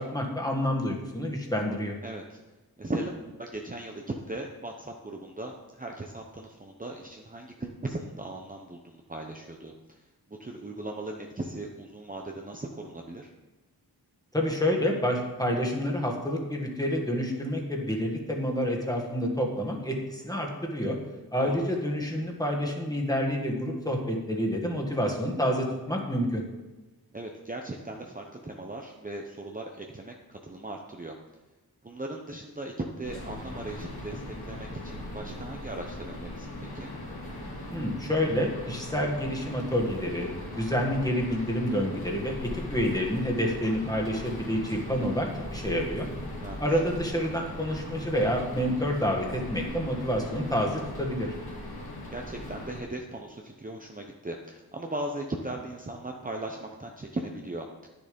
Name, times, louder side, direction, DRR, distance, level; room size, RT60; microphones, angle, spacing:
voice 1, 0.0-2.0 14.3-21.0 21.3-26.4 37.7-40.3 40.5-46.1 46.6-51.3, equal, 10° left, 0 dB, 1.8 m, -28 dB
voice 2, 2.0-2.4 2.8-10.0 10.3-13.3 21.4-21.6 27.1-31.1 31.8-36.9 46.4-46.8 52.1-57.9, right 2 dB, 20° right, 1 dB, 0.8 m, -38 dB
sound 1, 33.0-52.8, left 1 dB, 75° left, 2.3 m, -39 dB
10.0 x 6.9 x 5.2 m, 1.1 s
wide cardioid pair, 70°, 38 cm